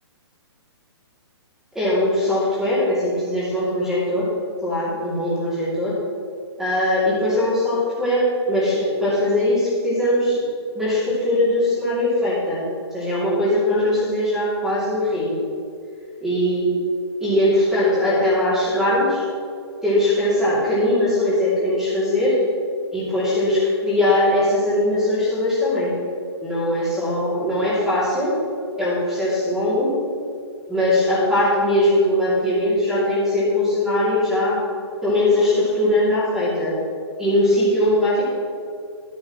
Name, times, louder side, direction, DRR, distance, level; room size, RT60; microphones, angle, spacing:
voice 1, 1.7-4.3 4.6-6.0 6.6-10.4 10.7-12.6 12.9-15.4 16.2-16.7 17.2-19.3 19.8-22.4 22.9-25.9 26.4-28.4 28.8-29.9 30.7-34.6 35.0-36.7 37.2-38.2, left 1 dB, 5° right, -10 dB, 2.7 m, -20 dB
13.5 x 8.8 x 3.1 m, 2.3 s
hypercardioid pair, 175°, 14 cm